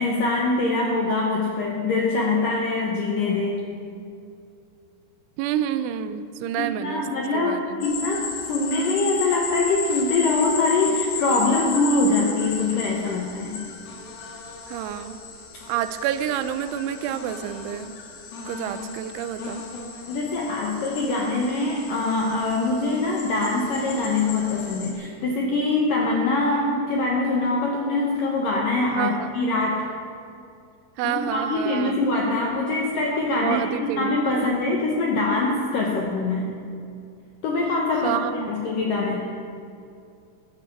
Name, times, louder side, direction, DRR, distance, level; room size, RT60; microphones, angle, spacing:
voice 1, 0.0-3.6 6.6-13.7 20.1-29.9 31.0-33.7 33.9-36.6 37.4-38.2 38.5-39.2, left 3 dB, 75° left, 0 dB, 2.0 m, -23 dB
voice 2, 5.4-7.0 7.3-7.9 14.7-15.2 15.7-17.9 18.5-19.6 28.9-29.4 31.0-32.1 33.4-34.6 38.0-38.5, right 10 dB, 80° right, 11 dB, 3.0 m, -29 dB
sound 1, 7.8-24.9, left 5 dB, 60° left, 3.1 m, -35 dB
15.0 x 10.5 x 7.7 m, 2.5 s
omnidirectional pair, 5.6 m